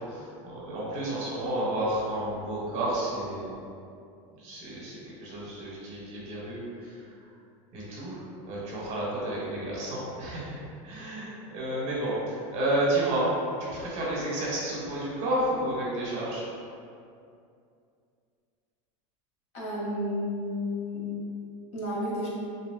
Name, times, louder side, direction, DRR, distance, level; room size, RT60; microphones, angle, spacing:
voice 1, 0.0-3.5 4.4-7.0 7.7-16.5, right 1 dB, 45° right, -6 dB, 0.9 m, -31 dB
voice 2, 19.5-21.1 21.7-22.3, left 1 dB, 45° left, -6 dB, 0.8 m, -31 dB
2.8 x 2.8 x 2.4 m, 2.4 s
supercardioid pair, 145°, 17 cm